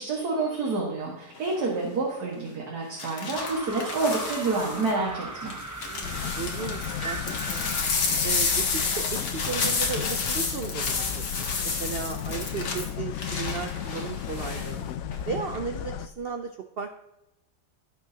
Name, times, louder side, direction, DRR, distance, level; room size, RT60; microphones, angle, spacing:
voice 1, 0.0-5.6, right 3 dB, 70° right, -3 dB, 2.2 m, -28 dB
sound 1, 1.4-1.7 3.0-4.9 5.5-14.7 15.1-15.6, left 4 dB, 90° left, 2.1 m, -30 dB
sound 2, 3.3-7.8, right 2 dB, 15° right, 0.7 m, -37 dB
voice 2, 5.9-7.6 8.2-14.9 15.3-17.0, right 6 dB, 85° right, 6 dB, 0.5 m, -35 dB
sound 3, 6.0-16.1, left 9 dB, 70° left, 0.9 m, -35 dB
17.5 x 6.4 x 2.8 m, 0.89 s
omnidirectional pair, 1.8 m